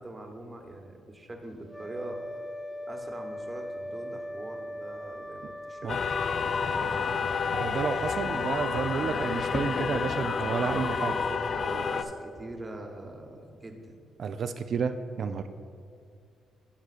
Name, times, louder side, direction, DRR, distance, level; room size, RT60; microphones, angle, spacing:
voice 1, 0.0-2.2 2.9-7.2 10.7-13.9, right 1 dB, 25° right, 3 dB, 1.0 m, -43 dB
sound 1, 1.6-12.3, left 1 dB, 5° left, 1.0 m, -41 dB
sound 2, 5.9-12.0, left 5 dB, 45° left, 0.3 m, -29 dB
voice 2, 7.5-11.1 14.2-15.5, right 6 dB, 55° right, 9 dB, 0.3 m, -31 dB
14.0 x 5.1 x 2.5 m, 2.3 s
cardioid pair, 90°, 0 cm